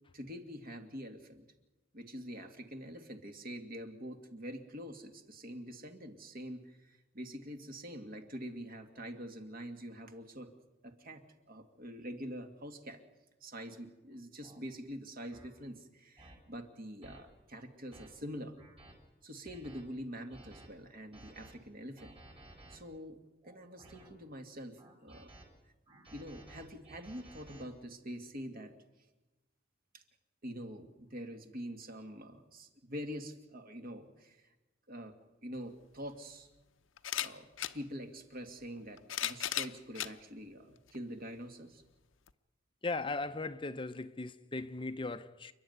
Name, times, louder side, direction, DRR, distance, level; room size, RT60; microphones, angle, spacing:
voice 1, 0.1-1.5 1.9-10.5 10.8-11.2 11.5-13.0 13.4-18.6 19.2-22.2 22.7-23.2 23.4-25.3 26.1-28.7 29.9-30.0 30.4-34.4 34.9-35.1 35.4-36.5 37.2-41.8, equal, 50° right, 2.3 m, -45 dB
sound 1, 13.6-13.8 14.4-14.6 15.3-15.5 16.2-16.4 17.0-17.2 17.7-18.1 18.6-18.9 19.4-19.8 20.3-20.7 21.1-21.5 22.0-22.8 23.4-24.1 24.8-25.4 25.9-27.6, right 1 dB, 30° right, 4.2 m, -55 dB
sound 2, 35.6-35.7 37.0-37.8 38.8-40.1 40.9-41.0 42.3-42.4, left 11 dB, 85° left, 0.8 m, -36 dB
voice 2, 42.8-45.5, left 3 dB, 25° left, 0.7 m, -38 dB
29.0 x 11.5 x 9.4 m
head